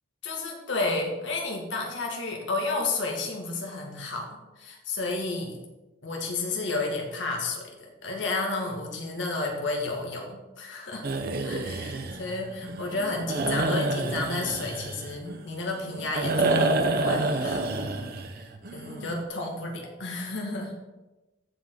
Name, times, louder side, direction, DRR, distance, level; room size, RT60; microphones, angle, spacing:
voice 1, 0.2-5.6 6.0-11.0 11.4-17.7 18.7-20.7, left 3 dB, 85° left, 0 dB, 1.9 m, -31 dB
sound 1, 11.0-19.2, right 2 dB, 55° right, 0.8 m, -29 dB
14.0 x 4.9 x 3.9 m, 1.1 s
head